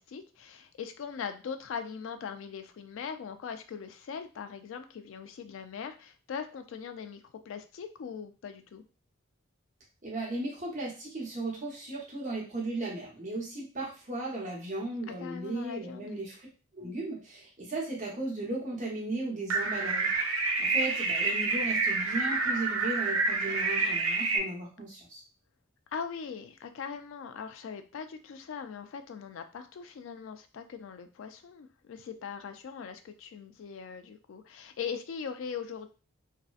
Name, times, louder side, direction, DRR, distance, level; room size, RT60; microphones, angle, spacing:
voice 1, 0.0-8.8 15.1-16.1 25.9-35.9, left 6 dB, 70° left, 8 dB, 0.3 m, -40 dB
voice 2, 10.0-16.5 16.7-25.2, right 2 dB, 35° right, -3 dB, 0.8 m, -36 dB
sound 1, 19.5-24.4, right 3 dB, 85° right, 0.5 m, -28 dB
2.7 x 2.1 x 2.4 m, 0.34 s
head